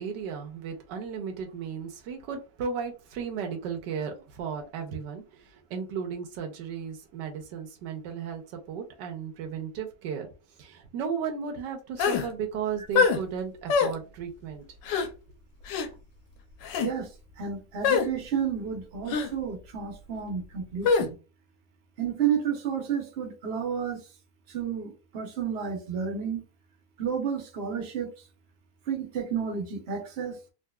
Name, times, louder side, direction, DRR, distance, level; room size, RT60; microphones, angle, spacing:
voice 1, 0.0-5.2 5.5-10.3 10.6-14.6, right 6 dB, 80° right, 1.4 m, -35 dB
sound 1, 12.0-12.3 12.9-13.2 13.7-13.9 14.8-15.1 15.7-15.9 16.6-16.9 17.8-18.1 19.1-19.3 20.8-21.1, left 5 dB, 90° left, 1.4 m, -23 dB
voice 2, 17.4-21.2 22.0-24.0 24.5-26.4 27.0-28.1 28.9-30.4, right 7 dB, 45° right, 0.9 m, -31 dB
3.7 x 2.6 x 2.3 m
omnidirectional pair, 1.9 m